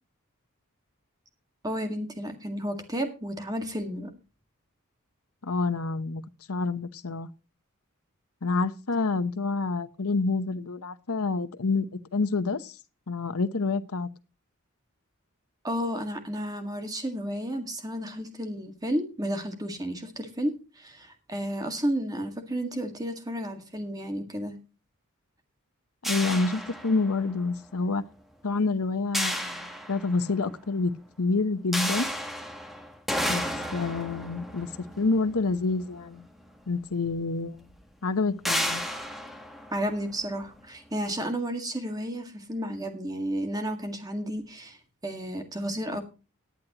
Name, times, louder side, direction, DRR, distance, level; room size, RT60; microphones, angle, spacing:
voice 1, 1.6-4.1 15.6-24.6 39.7-44.8 45.0-46.0, equal, 15° right, 1.9 m, -32 dB
voice 2, 5.4-6.2 6.5-7.3 8.4-11.9 12.1-12.7 13.1-14.1 26.0-28.0 28.4-30.9 31.2-32.1 33.3-33.4 33.7-34.7 35.0-36.3 36.7-37.7 38.0-38.8, left 3 dB, 85° left, 1.0 m, -28 dB
sound 1, 26.0-27.4 29.1-30.4 31.7-36.2 37.1-37.2 37.6-37.8 38.4-40.4, equal, ahead, 1.3 m, -32 dB
18.0 x 9.4 x 3.0 m
head